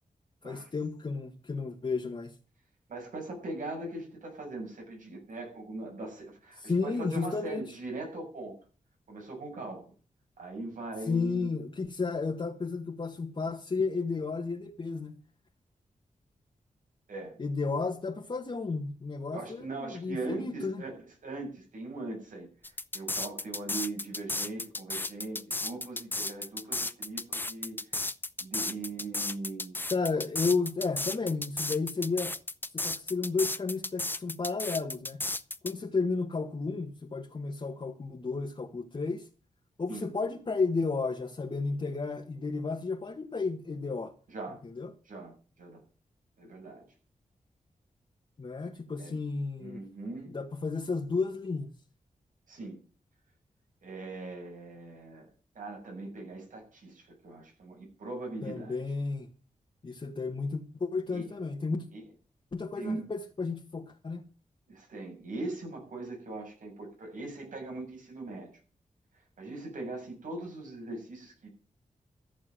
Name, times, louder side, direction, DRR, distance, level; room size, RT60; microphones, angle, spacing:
voice 1, 0.4-2.3 6.6-7.7 11.1-15.2 17.4-20.8 29.9-32.4 32.7-35.2 35.6-39.3 39.8-44.1 44.7-44.9 48.4-49.8 50.3-51.7 58.4-59.3 59.8-61.8 62.5-64.2, left 4 dB, 40° left, 1.7 m, -32 dB
voice 2, 2.9-8.6 9.1-9.8 10.4-11.5 17.1-17.4 19.3-20.9 21.2-22.5 22.9-27.8 28.4-29.8 39.9-40.1 44.3-44.6 45.0-45.8 46.4-46.8 49.0-49.2 49.6-50.3 52.5-52.8 53.8-55.3 55.5-58.8 61.1-61.3 61.9-62.0 62.8-63.1 64.7-68.5 69.4-71.5, right 2 dB, 85° right, 7.3 m, -40 dB
sound 1, 22.6-35.7, left 2 dB, 15° left, 0.6 m, -34 dB
14.0 x 7.2 x 7.8 m
wide cardioid pair, 100°, 13 cm